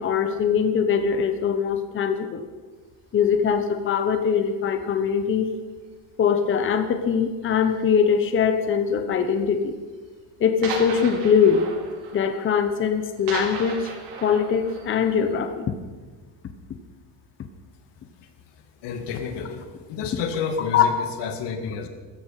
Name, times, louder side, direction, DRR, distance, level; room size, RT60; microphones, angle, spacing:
voice 1, 0.0-2.4 3.1-5.5 6.2-9.7 10.4-11.7 12.1-13.9 14.2-15.7 20.7-21.1, left 7 dB, 30° left, 7 dB, 1.0 m, -22 dB
sound 1, 3.0-3.2 4.0-4.4 4.6-5.1 5.5-5.7 6.2-6.3 6.5-6.6 7.4-7.9 8.7-8.8 9.1-9.2 9.6-9.7 10.0-10.1 10.6-15.3, right 4 dB, 90° right, 4.8 m, -36 dB
voice 2, 18.8-21.9, left 5 dB, 85° left, 7 dB, 2.2 m, -30 dB
15.5 x 14.0 x 5.8 m, 1.4 s
cardioid pair, 170°, 41 cm